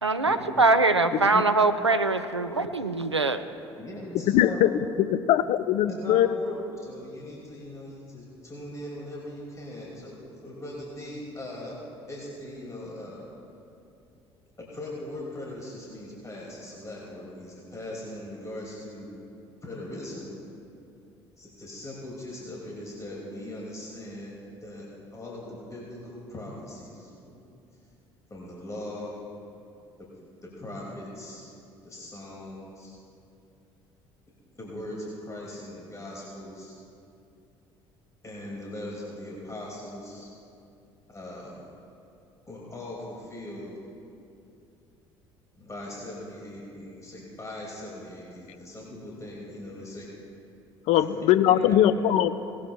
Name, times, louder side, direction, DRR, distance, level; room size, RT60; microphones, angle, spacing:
voice 1, 0.0-3.4, right 3 dB, 90° right, 9 dB, 0.5 m, -23 dB
voice 2, 3.7-4.6 5.9-10.1 10.4-11.8 12.1-13.3 14.7-19.2 19.6-20.3 21.4-27.3 28.3-29.2 30.0-30.1 30.4-31.5 31.8-33.0 34.5-36.8 38.2-40.3 41.1-41.6 42.5-43.7 45.6-50.1 50.9-52.1, left 1 dB, 20° left, -4 dB, 2.4 m, -40 dB
voice 3, 4.3-4.7 5.3-6.3 50.9-52.3, left 11 dB, 50° left, 12 dB, 0.5 m, -21 dB
18.5 x 12.5 x 2.3 m, 2.6 s
figure-of-eight pair, 55°, 14 cm